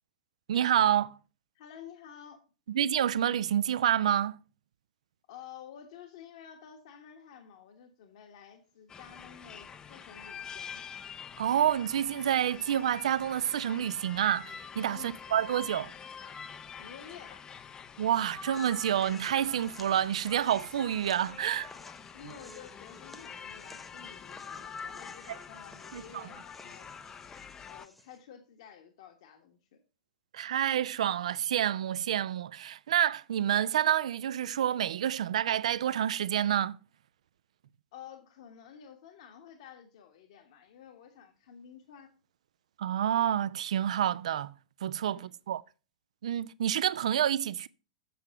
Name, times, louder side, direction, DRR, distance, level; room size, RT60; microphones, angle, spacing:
voice 1, 0.5-1.2 2.7-4.4 11.4-15.9 18.0-21.7 25.3-25.4 25.9-26.2 30.3-36.8 42.8-44.5 44.8-45.6 46.2-47.7, right 10 dB, 60° right, 0.5 m, -28 dB
voice 2, 1.5-2.4 5.3-10.8 14.9-15.1 16.8-17.4 22.1-26.9 27.7-29.8 37.9-42.1 45.1-45.4, left 8 dB, 55° left, 1.2 m, -51 dB
sound 1, 8.9-27.9, left 6 dB, 20° left, 0.5 m, -46 dB
sound 2, 18.5-28.2, equal, ahead, 1.1 m, -57 dB
7.9 x 6.5 x 5.7 m
figure-of-eight pair, 100°, 4 cm